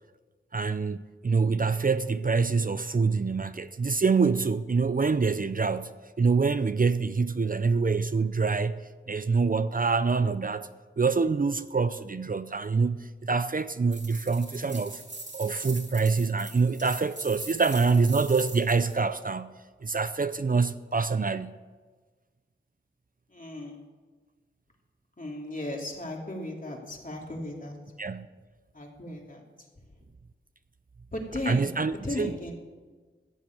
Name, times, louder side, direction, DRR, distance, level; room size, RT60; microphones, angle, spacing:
voice 1, 0.5-5.9 6.2-8.8 9.1-10.7 11.0-15.0 15.3-19.5 19.8-21.6 28.0-28.3 31.5-32.3, right 4 dB, 45° right, 0.5 m, -25 dB
sound 1, 13.9-19.0, right 2 dB, 65° right, 2.9 m, -42 dB
voice 2, 23.3-23.8 25.2-27.7 28.7-29.4 31.1-32.5, left 1 dB, 45° left, 2.8 m, -36 dB
15.0 x 7.6 x 8.5 m
wide cardioid pair, 70°, 20 cm